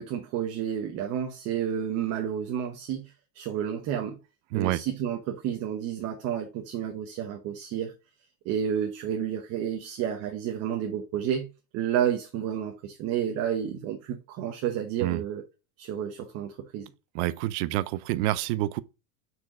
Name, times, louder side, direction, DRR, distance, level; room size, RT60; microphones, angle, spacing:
voice 1, 0.0-4.2 4.5-7.9 8.4-11.5 11.7-15.4 15.8-16.9, right 9 dB, 35° right, 1.0 m, -30 dB
voice 2, 4.5-4.8 15.0-15.2 17.1-18.8, right 16 dB, 50° right, 0.6 m, -27 dB
6.3 x 4.6 x 4.9 m
supercardioid pair, 165°, 44 cm